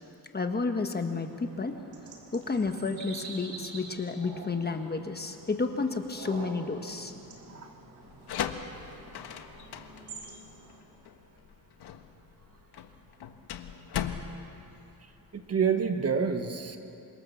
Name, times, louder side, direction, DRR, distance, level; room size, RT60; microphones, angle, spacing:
voice 1, 0.3-1.8 2.3-7.1, left 4 dB, 25° left, 6 dB, 1.3 m, -31 dB
sound 1, 1.2-10.8, right 3 dB, 65° right, 4.2 m, -47 dB
sound 2, 8.0-15.6, left 8 dB, 85° left, 1.5 m, -38 dB
voice 2, 15.3-16.8, right 6 dB, 40° right, 6 dB, 1.7 m, -28 dB
28.0 x 25.5 x 7.2 m, 2.8 s
wide cardioid pair, 150°, 39 cm